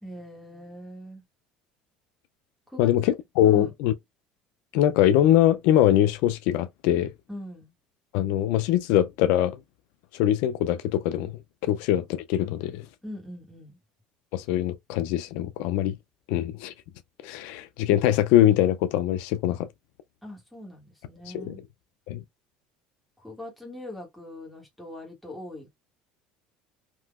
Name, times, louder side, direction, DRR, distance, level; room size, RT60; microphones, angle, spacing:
voice 1, 0.0-1.2 2.7-3.1 3.4-3.7 7.3-7.7 13.0-13.8 20.2-21.6 23.2-25.7, left 1 dB, ahead, 1.5 m, -41 dB
voice 2, 2.8-3.9 4.7-7.1 8.1-9.6 10.1-11.3 11.6-12.9 14.3-16.0 16.3-16.7 17.2-19.7 21.3-21.6 22.1-22.2, left 12 dB, 75° left, 0.4 m, -22 dB
3.7 x 2.7 x 2.4 m
cardioid pair, 155°, 3 cm